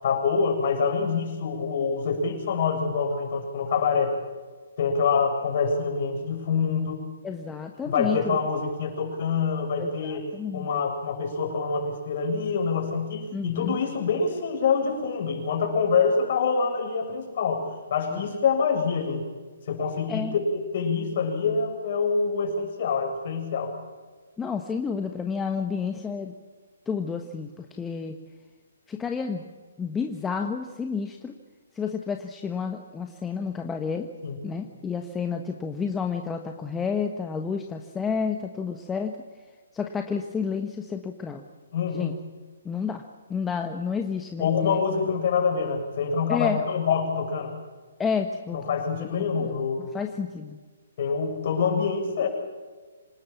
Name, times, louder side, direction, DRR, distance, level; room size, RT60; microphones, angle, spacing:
voice 1, 0.0-4.1 4.8-7.1 7.9-10.2 10.5-17.6 17.9-19.2 19.7-23.7 34.2-34.3 41.7-42.1 44.4-47.5 48.5-49.9 51.0-52.3, left 5 dB, 50° left, 2 dB, 7.3 m, -26 dB
voice 2, 7.2-8.4 9.8-10.7 13.3-13.8 18.1-18.2 20.1-20.3 24.4-26.3 26.9-28.2 28.9-29.4 29.8-31.4 31.7-34.1 34.4-39.1 39.7-41.4 41.9-42.1 42.6-43.0 43.3-44.5 46.3-46.6 48.0-48.7 49.0-49.5 49.8-50.6, left 6 dB, 10° left, 4 dB, 1.4 m, -30 dB
26.5 x 19.5 x 7.3 m, 1.4 s
figure-of-eight pair, 130°, 0 cm